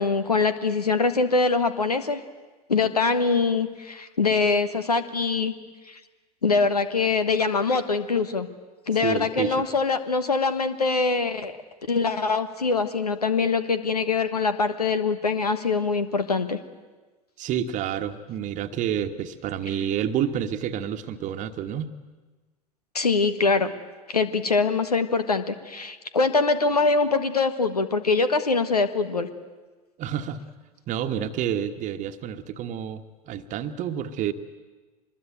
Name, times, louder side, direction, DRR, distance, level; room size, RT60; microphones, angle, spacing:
voice 1, 0.0-2.2 2.7-5.5 5.9-6.0 6.4-8.5 8.9-11.6 11.9-16.6 22.9-23.7 24.1-29.3, left 4 dB, 85° left, 12 dB, 1.3 m, -23 dB
voice 2, 9.0-9.7 17.4-21.9 30.0-30.4 30.9-34.3, right 9 dB, 40° right, 9 dB, 1.3 m, -29 dB
24.0 x 21.0 x 9.1 m, 1.3 s
figure-of-eight pair, 80°, 19 cm